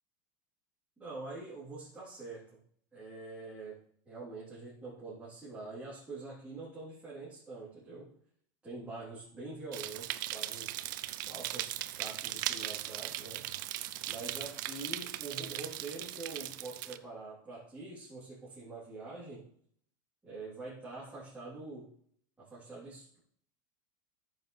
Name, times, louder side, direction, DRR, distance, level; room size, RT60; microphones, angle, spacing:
voice 1, 1.0-2.6 2.9-8.1 8.6-11.0 11.3-13.5 14.1-19.5 20.2-21.9 22.4-23.2, right 3 dB, 10° right, -10 dB, 3.5 m, -45 dB
sound 1, 9.7-17.0, right 15 dB, 70° right, 0.6 m, -38 dB
14.0 x 7.0 x 3.4 m, 0.65 s
supercardioid pair, 140°, 11 cm